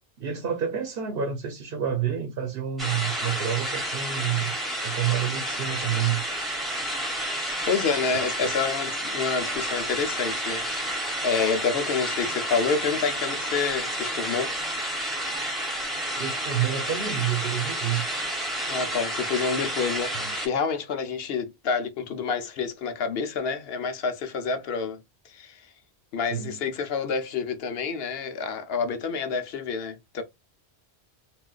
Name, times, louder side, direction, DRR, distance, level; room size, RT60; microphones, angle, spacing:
voice 1, 0.2-4.5 4.8-6.2 16.2-18.4 20.1-20.3 26.3-26.6, right 9 dB, 65° right, 0.8 m, -29 dB
sound 1, 2.8-20.5, right 1 dB, ahead, 1.1 m, -30 dB
voice 2, 7.7-10.7 11.2-14.5 18.7-25.0 25.2-25.6 26.1-30.2, left 5 dB, 70° left, 0.9 m, -28 dB
3.7 x 2.4 x 2.3 m
omnidirectional pair, 1.1 m